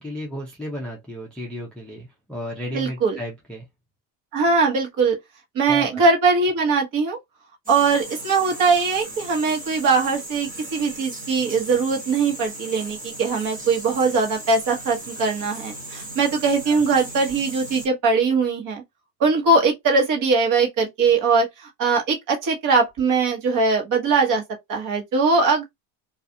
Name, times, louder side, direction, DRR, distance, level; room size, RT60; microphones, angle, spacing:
voice 1, 0.0-3.7 5.7-6.0 16.7-16.8, equal, 5° left, 0.3 m, -33 dB
voice 2, 2.7-3.2 4.3-5.2 5.5-7.2 7.7-18.8 19.2-24.4 24.7-25.6, right 4 dB, 45° right, 1.1 m, -21 dB
sound 1, 7.6-17.9, right 1 dB, 20° right, 1.2 m, -37 dB
2.4 x 2.3 x 2.6 m
cardioid pair, 155°, 45 cm